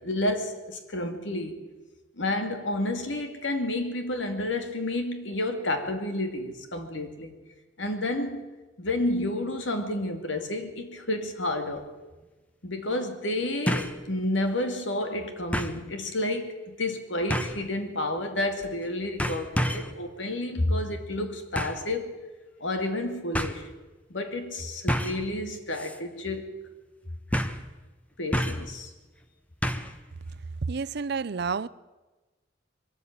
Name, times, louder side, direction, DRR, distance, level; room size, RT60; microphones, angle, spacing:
voice 1, 0.0-1.6 2.2-7.3 7.8-8.4 8.8-11.8 12.6-22.1 22.6-23.7 24.1-26.5 28.2-28.9, left 1 dB, 90° left, 2.5 m, -30 dB
sound 1, 11.8-11.9 13.7-14.0 14.4-14.5 15.5-15.8 17.3-17.7 18.6-18.9 19.2-19.9 21.6-21.9 22.8-22.9 23.3-23.6 24.9-25.3 25.7-26.0 26.3-26.4 27.3-27.7 28.3-28.7 29.6-30.0 30.3-30.4, equal, 10° left, 1.1 m, -29 dB
voice 2, 30.6-31.7, right 5 dB, 60° right, 0.6 m, -29 dB
22.0 x 13.5 x 8.9 m
head